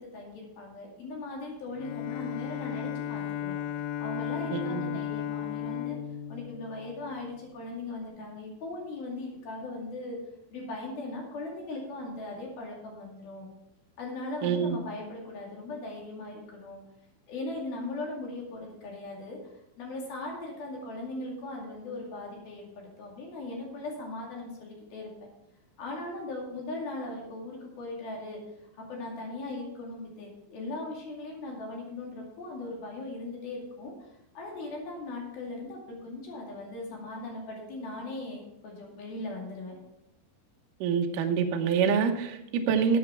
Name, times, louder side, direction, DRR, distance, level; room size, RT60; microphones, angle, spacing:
voice 1, 0.0-3.6 4.0-6.0 6.3-10.2 10.5-13.5 14.0-16.8 17.3-19.4 19.8-22.7 23.0-25.1 25.8-28.4 28.8-33.9 34.3-39.8, left 2 dB, 60° left, -1 dB, 4.0 m, -39 dB
Bowed string instrument, 1.7-7.4, left 11 dB, 85° left, 3.2 m, -35 dB
voice 2, 4.5-5.0 14.4-14.8 40.8-43.0, right 6 dB, 80° right, 4 dB, 1.9 m, -26 dB
12.0 x 8.4 x 4.6 m, 0.85 s
omnidirectional pair, 5.2 m